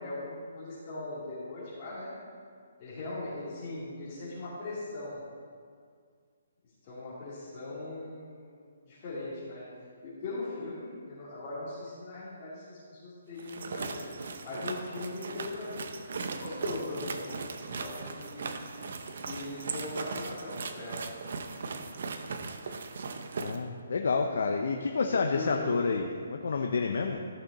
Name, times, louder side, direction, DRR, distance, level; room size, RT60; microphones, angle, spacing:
voice 1, 0.0-2.1 2.8-5.2 6.8-8.6 8.9-9.7 10.0-14.0 14.4-18.5 19.2-21.0 21.7-21.9 25.1-25.8, left 2 dB, 30° left, -11 dB, 2.5 m, -40 dB
sound 1, 13.4-23.6, right 4 dB, 60° right, 0.8 m, -38 dB
voice 2, 23.4-27.2, left 4 dB, 70° left, 3 dB, 0.7 m, -29 dB
14.0 x 6.5 x 4.2 m, 2.1 s
hypercardioid pair, 165°, 0 cm